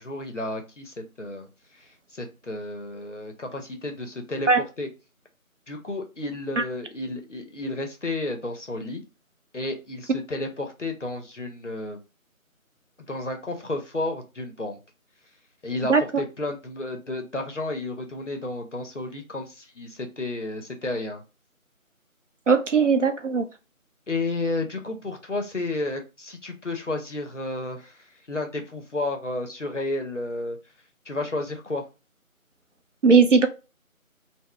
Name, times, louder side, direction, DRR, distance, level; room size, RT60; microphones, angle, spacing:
voice 1, 0.0-1.5 2.1-4.9 5.7-9.0 9.5-12.0 13.1-14.8 15.6-21.2 24.1-30.6 31.1-31.8, left 2 dB, 60° left, 4 dB, 0.6 m, -32 dB
voice 2, 22.5-23.5 33.0-33.5, right 5 dB, 60° right, 7 dB, 0.5 m, -18 dB
2.2 x 2.0 x 3.6 m, 0.30 s
figure-of-eight pair, 175°, 42 cm